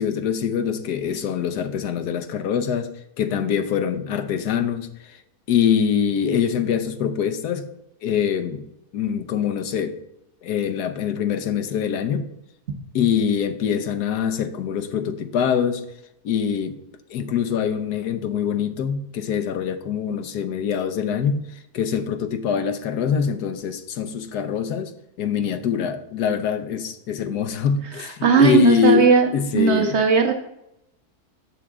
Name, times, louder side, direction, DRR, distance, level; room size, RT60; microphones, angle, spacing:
voice 1, 0.0-2.9 3.2-5.2 5.5-7.7 8.0-8.6 8.9-10.0 10.4-12.3 12.9-15.8 16.2-16.8 17.1-24.9 25.2-30.0, left 7 dB, 80° left, 1.3 m, -24 dB
voice 2, 28.2-29.3 29.5-30.3, right 6 dB, 45° right, 1.3 m, -17 dB
8.9 x 7.3 x 3.6 m
omnidirectional pair, 1.7 m